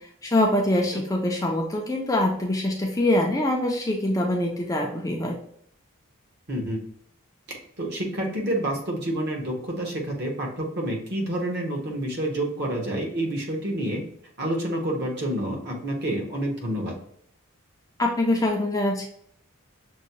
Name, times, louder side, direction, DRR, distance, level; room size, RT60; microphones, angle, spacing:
voice 1, 0.0-5.4 18.0-19.1, left 1 dB, 15° left, 0 dB, 0.5 m, -24 dB
voice 2, 6.5-6.8 7.5-14.0 14.4-16.9, right 1 dB, 50° right, 0 dB, 1.2 m, -28 dB
6.2 x 2.3 x 2.8 m, 0.67 s
head